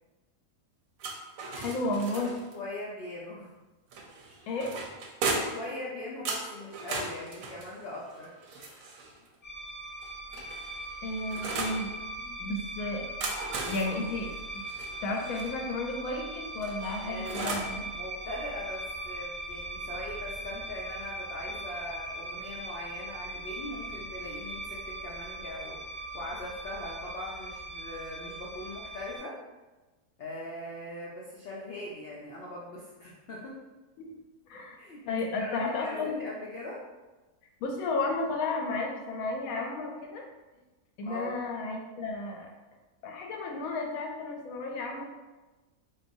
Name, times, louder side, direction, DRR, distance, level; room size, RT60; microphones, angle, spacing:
sound 1, 1.0-2.6 3.9-5.7 6.3-9.2 10.0-11.8 13.0-15.5 16.6-17.8, right 3 dB, 70° right, 0.9 m, -37 dB
voice 1, 1.5-2.3 4.5-4.7 11.0-11.9 12.2-13.1 13.7-14.7 15.0-17.9 34.0-34.1 34.5-34.8 35.1-36.2 37.6-40.2 41.0-42.5 43.0-45.0, left 2 dB, 70° left, 1 dB, 1.0 m, -33 dB
voice 2, 2.5-3.6 5.3-8.4 17.0-17.6 17.9-29.3 30.2-33.6 34.8-36.8 41.1-41.4, left 1 dB, 85° left, -5 dB, 0.5 m, -41 dB
sound 2, 9.4-29.2, right 1 dB, 35° left, 0.5 m, -40 dB
3.8 x 2.6 x 2.6 m, 1.2 s
omnidirectional pair, 1.7 m